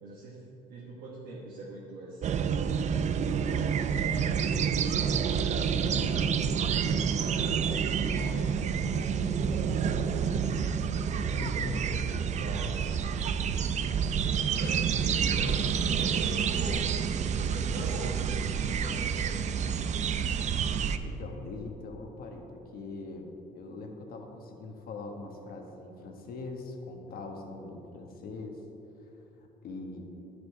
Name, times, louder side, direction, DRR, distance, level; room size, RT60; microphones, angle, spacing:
voice 1, 0.0-2.5 3.2-3.6 7.9-8.5 9.4-10.6 10.9-11.9 12.3-12.9 14.5-16.9 17.2-19.5, right 2 dB, 70° right, -4 dB, 1.3 m, -43 dB
sound 1, 2.2-21.0, right 7 dB, 45° right, 0.5 m, -28 dB
voice 2, 5.6-6.3 6.8-7.3 11.3-11.9 21.0-28.6 29.0-29.1 29.4-30.1, left 3 dB, 60° left, 3 dB, 1.3 m, -42 dB
10.5 x 6.8 x 4.6 m, 2.9 s
cardioid pair, 110°, 17 cm